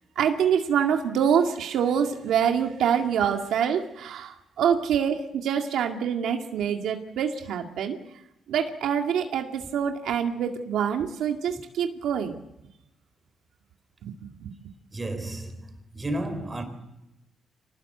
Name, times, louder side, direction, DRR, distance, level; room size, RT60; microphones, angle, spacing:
voice 1, 0.2-8.0 8.5-12.3 14.0-14.1 14.4-14.5, right 8 dB, 80° right, 2.1 m, -25 dB
voice 2, 14.9-15.6 15.9-16.6, right 1 dB, 20° right, 4.0 m, -31 dB
25.5 x 19.0 x 8.0 m
cardioid pair, 130°, 0 cm